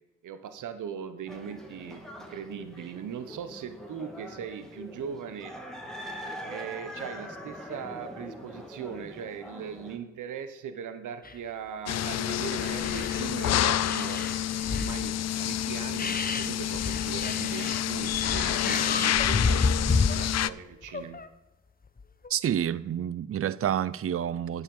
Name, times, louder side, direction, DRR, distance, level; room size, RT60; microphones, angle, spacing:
voice 1, 0.2-5.5 6.4-14.3 14.7-21.2, right 7 dB, 75° right, 1.1 m, -39 dB
sound 1, 1.3-10.0, equal, ahead, 2.4 m, -43 dB
sound 2, 11.2-11.4 12.0-12.1 12.4-13.5 13.8-15.0 15.6-15.7 16.0-20.4 20.8-21.3 22.0-22.3, left 4 dB, 30° left, 1.0 m, -30 dB
sound 3, 11.9-20.5, left 11 dB, 55° left, 0.5 m, -28 dB
voice 2, 22.3-24.6, right 9 dB, 45° right, 0.5 m, -29 dB
9.2 x 7.3 x 7.2 m
supercardioid pair, 50°, 31 cm